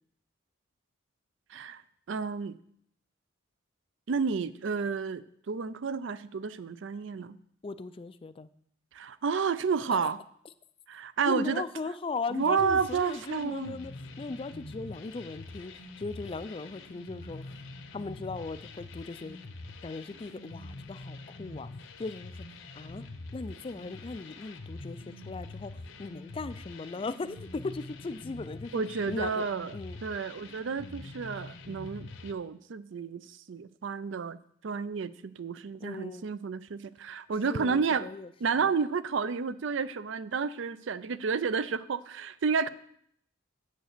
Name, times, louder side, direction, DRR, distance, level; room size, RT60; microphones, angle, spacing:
voice 1, 1.5-1.8 2.1-2.6 4.1-7.4 8.9-10.2 10.9-11.6 12.3-13.8 28.7-29.7 30.0-34.4 34.6-38.1 38.4-42.7, right 5 dB, 65° right, 16 dB, 0.4 m, -31 dB
voice 2, 7.6-8.5 11.3-13.9 14.2-17.6 17.9-19.4 19.8-21.7 22.0-22.5 22.7-23.0 23.3-28.7 29.1-29.4 29.7-30.0 35.8-36.3 37.5-38.3 38.5-38.7, left 3 dB, 25° left, 13 dB, 0.3 m, -38 dB
sound 1, 12.4-32.3, left 2 dB, 70° left, 0.9 m, -45 dB
7.9 x 6.4 x 6.7 m, 0.69 s
head